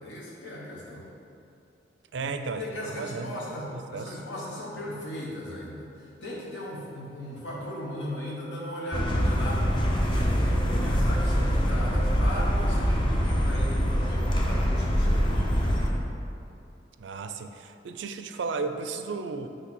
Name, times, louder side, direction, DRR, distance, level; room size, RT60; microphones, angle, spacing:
voice 1, 0.0-1.1 2.2-2.3 2.6-16.1, left 1 dB, 75° left, -5 dB, 1.2 m, -37 dB
voice 2, 2.1-3.4 3.7-4.2 17.0-19.5, right 4 dB, 75° right, 8 dB, 0.4 m, -34 dB
sound 1, 8.9-15.9, equal, 25° left, 0.7 m, -24 dB
8.3 x 3.2 x 5.9 m, 2.7 s
head